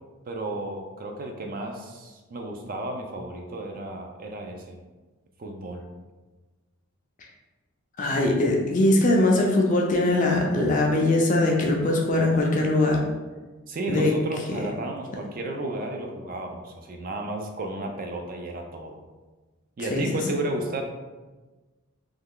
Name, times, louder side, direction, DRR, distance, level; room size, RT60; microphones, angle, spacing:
voice 1, 0.3-4.8 5.4-5.8 13.7-19.0 19.8-20.8, right 2 dB, 40° right, 3 dB, 0.3 m, -33 dB
voice 2, 8.0-13.0 13.9-14.1 19.9-20.1, left 2 dB, 35° left, 0 dB, 0.4 m, -21 dB
3.2 x 2.3 x 3.6 m, 1.2 s
head